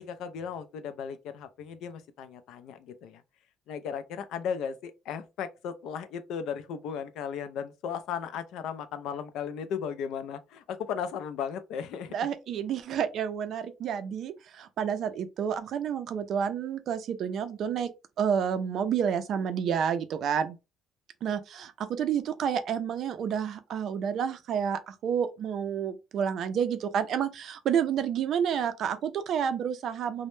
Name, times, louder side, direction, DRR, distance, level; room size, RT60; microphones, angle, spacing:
voice 1, 0.0-3.2 3.7-12.2, left 7 dB, 85° left, 0.3 m, -36 dB
voice 2, 12.1-17.9 18.2-20.6 21.2-30.3, right 8 dB, 60° right, 0.4 m, -29 dB
2.1 x 2.0 x 3.0 m
cardioid pair, 150°, 0 cm